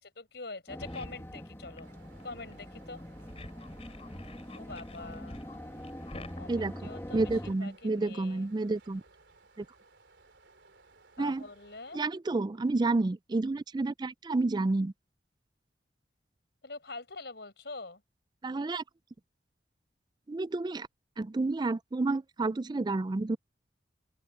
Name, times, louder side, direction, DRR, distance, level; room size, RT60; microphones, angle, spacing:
voice 1, 0.0-1.9 2.2-3.0 4.5-5.5 6.4-8.5 11.2-12.0 16.6-18.0, left 3 dB, 65° left, 5.8 m, -45 dB
sound 1, 0.7-7.5, equal, 15° left, 1.9 m, -44 dB
sound 2, 0.8-1.8 2.2-2.6 3.0-6.4, left 1 dB, 35° left, 4.0 m, -48 dB
sound 3, 1.8-12.0, right 3 dB, 75° right, 3.3 m, -60 dB
voice 2, 6.5-9.0 9.6-9.7 11.2-11.5 11.9-14.9 18.4-18.8 20.3-20.9 21.2-23.4, right 3 dB, 25° right, 0.3 m, -30 dB
open air
head